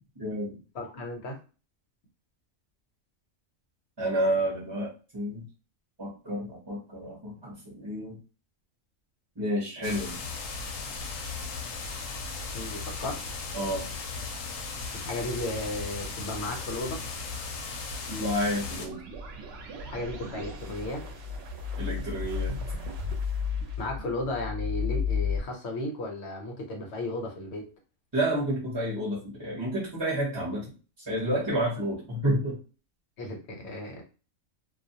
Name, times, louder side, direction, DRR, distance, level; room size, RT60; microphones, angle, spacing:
voice 1, 0.2-0.5 4.0-5.4 6.0-8.1 9.4-10.2 13.5-13.8 18.1-19.0 21.8-22.5 28.1-30.6 31.1-32.6, right 1 dB, 25° right, -6 dB, 0.7 m, -30 dB
voice 2, 0.7-1.4 12.5-13.2 14.9-17.0 19.9-21.0 23.8-27.7 33.2-34.0, left 1 dB, 60° left, 2 dB, 0.9 m, -34 dB
sound 1, 9.8-18.9, left 4 dB, 90° left, 1.0 m, -36 dB
sound 2, 18.6-25.4, left 5 dB, 65° right, 0.8 m, -33 dB
2.3 x 2.1 x 2.7 m, 0.33 s
omnidirectional pair, 1.3 m